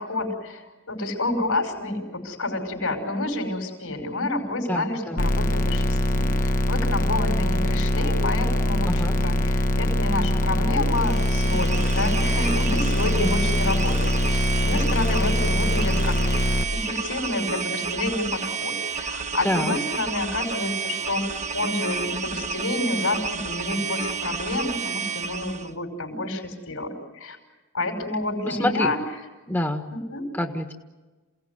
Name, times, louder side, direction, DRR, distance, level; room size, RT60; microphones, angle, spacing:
voice 1, 0.0-16.4 16.7-27.4 27.7-29.0 29.9-30.3, left 2 dB, 75° left, 4 dB, 5.4 m, -29 dB
voice 2, 4.7-5.2 8.9-9.2 13.2-13.3 19.4-19.7 28.4-28.9 29.5-29.8 30.4-30.7, left 1 dB, 10° left, 4 dB, 1.4 m, -26 dB
sound 1, 5.2-16.6, left 1 dB, 40° left, 1.1 m, -23 dB
sound 2, 10.9-25.7, right 6 dB, 35° right, 1.2 m, -31 dB
28.0 x 17.5 x 9.7 m, 1.2 s
head